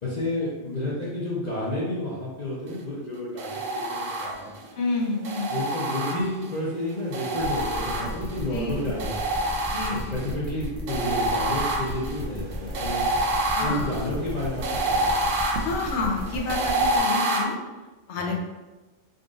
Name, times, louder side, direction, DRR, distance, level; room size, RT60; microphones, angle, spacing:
voice 1, 0.0-4.8 5.5-9.5 9.9-13.0 13.6-15.3 18.3-18.4, left 1 dB, 40° left, -7 dB, 0.8 m, -31 dB
sound 1, 3.4-4.6 5.2-6.6 7.1-8.5 9.0-10.3 10.9-17.4, right 1 dB, 85° right, 1.0 m, -27 dB
voice 2, 4.8-5.5 8.5-8.9 9.7-10.2 13.6-13.9 15.6-17.6 18.1-18.4, left 3 dB, 70° left, 1 dB, 1.0 m, -29 dB
sound 2, 7.4-17.0, left 1 dB, ahead, 0.6 m, -35 dB
3.9 x 2.5 x 3.7 m, 1.2 s
omnidirectional pair, 1.3 m